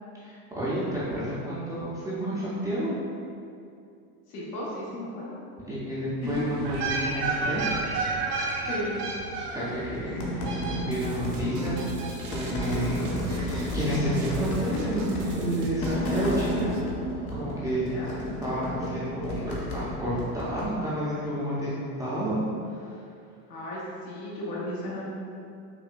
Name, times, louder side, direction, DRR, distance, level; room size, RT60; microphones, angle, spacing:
voice 1, 0.2-2.9 5.6-7.7 9.5-11.8 12.2-12.9 13.2-16.7 17.3-17.8 18.1-22.4, equal, 10° right, -10 dB, 0.3 m, -30 dB
voice 2, 4.3-5.4 6.3-6.4 8.7-9.0 10.3-10.7 13.0-13.3 17.9-18.1 23.5-25.0, left 1 dB, 85° left, -6 dB, 1.3 m, -35 dB
sound 1, 6.2-11.2 11.8-12.7 13.0-13.1, right 3 dB, 85° right, 0.9 m, -31 dB
sound 2, 9.8-20.7, equal, 50° left, 0.8 m, -32 dB
sound 3, 10.9-16.8, right 3 dB, 55° right, 0.6 m, -41 dB
5.4 x 2.1 x 2.5 m, 2.5 s
supercardioid pair, 130°, 46 cm